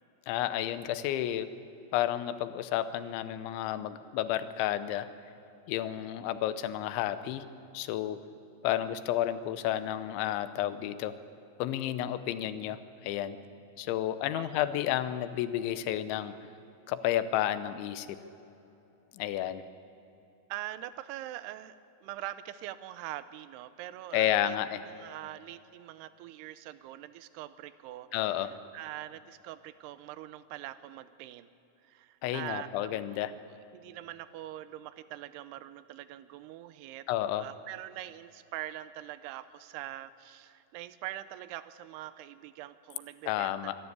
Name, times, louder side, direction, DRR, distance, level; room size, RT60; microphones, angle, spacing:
voice 1, 0.3-1.5 1.9-5.1 5.7-7.5 7.7-8.2 8.6-11.2 11.6-13.4 13.8-16.4 16.9-18.2 19.1-19.6 24.1-24.8 28.1-28.5 32.2-33.4 37.1-37.5 43.3-43.7, left 12 dB, 90° left, 12 dB, 3.2 m, -31 dB
voice 2, 14.3-14.7 20.5-31.5 31.8-33.2 33.5-37.1 37.3-43.6, right 14 dB, 80° right, 13 dB, 2.5 m, -43 dB
25.0 x 12.5 x 9.6 m, 2.9 s
omnidirectional pair, 5.2 m